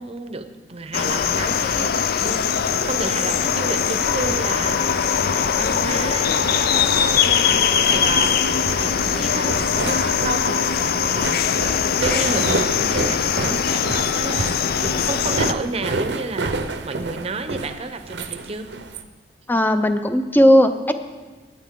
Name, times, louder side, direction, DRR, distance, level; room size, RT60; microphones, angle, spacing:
voice 1, 0.0-11.6 12.0-14.6 15.0-18.7, right 3 dB, 35° right, 9 dB, 0.7 m, -31 dB
sound 1, 0.9-15.5, left 7 dB, 55° left, 0.4 m, -21 dB
sound 2, 1.2-19.0, right 3 dB, 70° right, 0.7 m, -31 dB
voice 2, 19.5-20.9, equal, 10° left, 9 dB, 0.6 m, -16 dB
16.5 x 9.5 x 3.7 m, 1.3 s
head